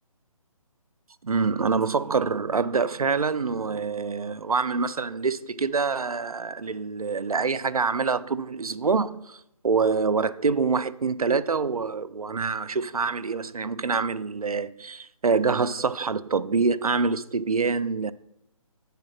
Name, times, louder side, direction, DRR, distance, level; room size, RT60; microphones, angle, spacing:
voice 1, 1.2-18.1, right 4 dB, 90° right, 0.4 m, -26 dB
8.2 x 3.6 x 5.8 m
figure-of-eight pair, 145°, 18 cm